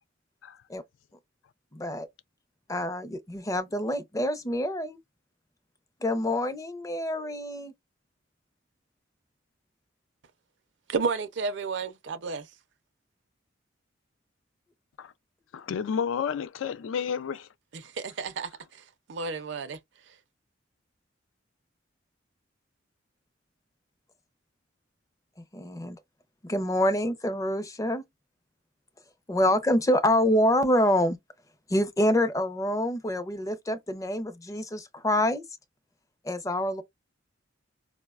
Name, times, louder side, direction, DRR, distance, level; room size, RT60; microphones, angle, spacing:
voice 1, 1.7-2.1 2.7-5.0 6.0-7.7 25.5-26.0 26.4-28.0 29.3-31.2 31.7-35.4 36.2-36.8, left 1 dB, 15° left, 0.4 m, -26 dB
voice 2, 10.9-12.4 18.0-18.5 19.1-19.8, right 4 dB, 65° right, 0.4 m, -31 dB
voice 3, 15.5-17.5, left 7 dB, 85° left, 0.3 m, -31 dB
4.6 x 2.1 x 2.3 m
head